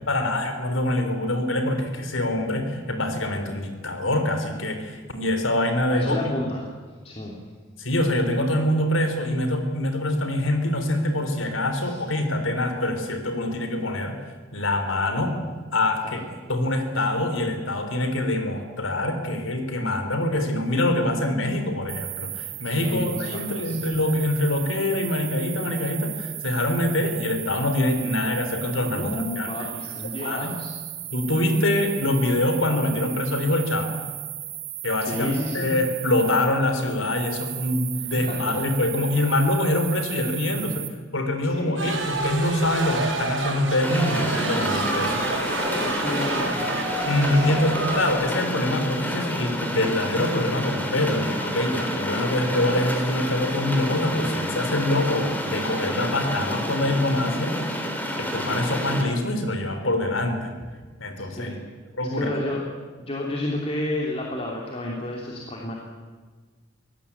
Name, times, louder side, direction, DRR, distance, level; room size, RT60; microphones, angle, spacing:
voice 1, 0.1-6.3 7.8-14.1 14.5-15.3 15.7-16.2 16.5-29.5 30.2-30.6 31.1-33.9 34.8-40.8 41.1-45.1 47.0-57.5 58.2-60.5 61.0-61.6 62.0-62.3, left 1 dB, 85° left, 7 dB, 3.8 m, -25 dB
voice 2, 5.9-6.7 7.0-7.4 11.8-12.0 16.0-16.3 22.8-23.8 28.9-30.7 35.0-35.7 37.9-38.5 41.5-41.9 44.8-45.2 45.8-46.7 47.3-47.8 58.4-58.7 61.4-61.6 62.1-62.6 63.0-65.7, left 1 dB, 30° left, -2 dB, 3.0 m, -31 dB
sound 1, 21.9-40.9, right 13 dB, 55° right, 2.4 m, -36 dB
sound 2, 41.8-48.1, right 2 dB, 70° right, 4.7 m, -28 dB
sound 3, 43.8-59.0, equal, 10° left, 3.4 m, -29 dB
24.5 x 17.5 x 8.6 m, 1.4 s
head